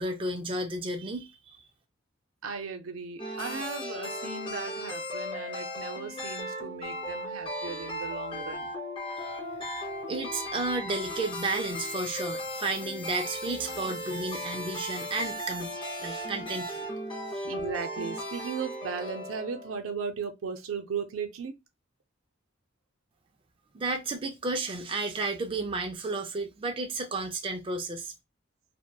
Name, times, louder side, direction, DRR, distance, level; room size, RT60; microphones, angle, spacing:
voice 1, 0.0-1.6 9.2-9.3 10.1-16.9 17.3-17.5 23.7-28.1, right 2 dB, 25° right, 0.4 m, -32 dB
voice 2, 2.4-8.7 16.2-16.6 17.4-21.6, right 5 dB, 85° right, 0.5 m, -37 dB
sound 1, 3.2-19.8, equal, 25° left, 0.5 m, -36 dB
2.7 x 2.1 x 2.2 m
head